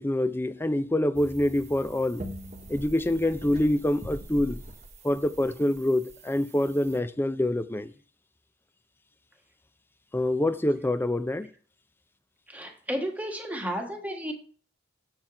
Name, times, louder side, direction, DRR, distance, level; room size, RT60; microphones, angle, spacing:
voice 1, 0.0-2.2 2.7-4.6 5.0-7.9 10.1-11.5, left 1 dB, 10° left, 0.4 m, -26 dB
sound 1, 1.1-7.0, right 1 dB, 35° right, 1.1 m, -43 dB
voice 2, 12.5-14.3, equal, 10° right, 1.4 m, -32 dB
7.3 x 4.6 x 5.8 m
head